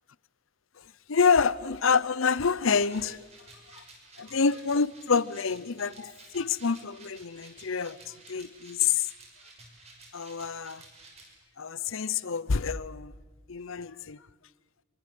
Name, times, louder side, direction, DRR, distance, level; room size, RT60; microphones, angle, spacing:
voice 1, 0.8-3.2 3.7-3.8 4.2-9.1 10.1-10.8 11.6-13.1 13.5-14.2, left 5 dB, 75° left, 0.7 m, -27 dB
sound 1, 2.8-11.3, right 3 dB, 30° right, 6.3 m, -53 dB
26.0 x 23.5 x 7.7 m
head